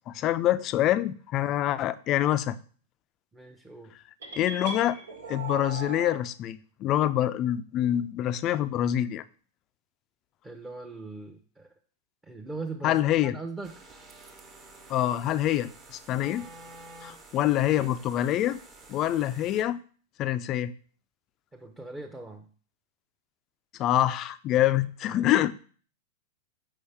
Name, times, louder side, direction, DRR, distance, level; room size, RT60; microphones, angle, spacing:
voice 1, 0.1-2.6 4.4-5.0 5.3-9.2 12.8-13.4 14.9-16.5 17.0-18.6 18.9-19.8 20.2-20.7 23.8-25.5, left 12 dB, 40° left, 0.4 m, -26 dB
voice 2, 3.3-3.9 10.4-11.7 12.2-13.8 21.5-22.5 25.1-25.4, right 3 dB, 10° right, 0.7 m, -40 dB
sound 1, 4.2-6.2, right 4 dB, 80° right, 1.5 m, -38 dB
sound 2, 13.6-19.6, right 3 dB, 35° right, 1.2 m, -49 dB
5.4 x 5.2 x 3.4 m
hypercardioid pair, 100°, 0 cm